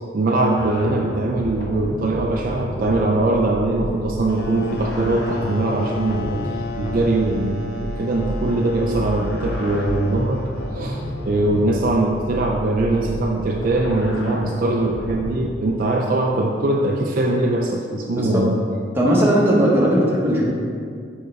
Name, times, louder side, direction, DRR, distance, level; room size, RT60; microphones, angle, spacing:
voice 1, 0.1-10.4 10.7-18.6, right 2 dB, 45° right, 1 dB, 0.4 m, -21 dB
sound 1, 0.6-15.4, equal, 80° left, 1.0 m, -31 dB
sound 2, 4.2-12.7, left 3 dB, 55° left, 0.4 m, -33 dB
voice 2, 18.1-18.5 18.9-20.4, equal, 10° right, -5 dB, 1.0 m, -17 dB
6.6 x 5.3 x 3.2 m, 2.2 s
head